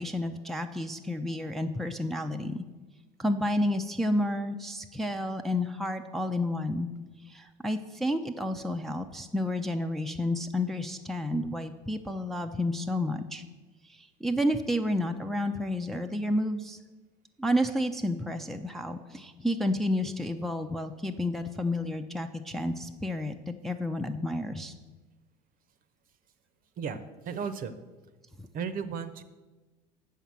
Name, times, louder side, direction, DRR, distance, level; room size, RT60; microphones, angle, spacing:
voice 1, 0.0-2.7 3.2-6.9 7.2-13.4 13.8-16.8 17.4-24.7 28.4-28.5, left 1 dB, ahead, 4 dB, 0.5 m, -30 dB
voice 2, 26.8-27.8 28.5-29.2, right 6 dB, 40° right, 12 dB, 0.8 m, -35 dB
7.2 x 5.6 x 7.4 m, 1.2 s
hypercardioid pair, 75°, 21 cm